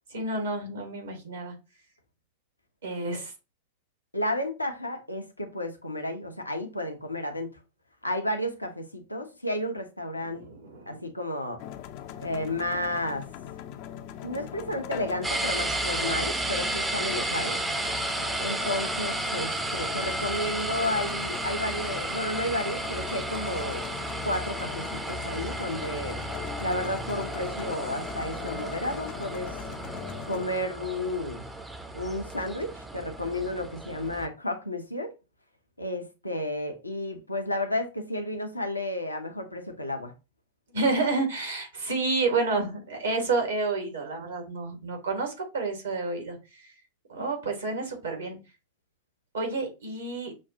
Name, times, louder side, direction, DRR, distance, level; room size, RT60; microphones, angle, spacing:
voice 1, 0.1-1.5 2.8-3.3 10.3-11.0 40.7-46.7 47.1-48.4 49.3-50.3, right 3 dB, 70° right, 1.5 m, -30 dB
voice 2, 4.1-7.6 8.0-10.5 10.9-11.6 12.2-13.3 14.2-17.6 18.4-23.9 24.2-26.2 26.6-29.6 30.3-31.4 31.9-35.1 35.8-40.1, left 1 dB, 85° left, 0.7 m, -32 dB
sound 1, 11.6-30.5, left 10 dB, 45° left, 0.5 m, -40 dB
sound 2, 15.2-34.3, right 2 dB, 10° right, 0.6 m, -33 dB
6.1 x 2.3 x 2.7 m
figure-of-eight pair, 90°, 0 cm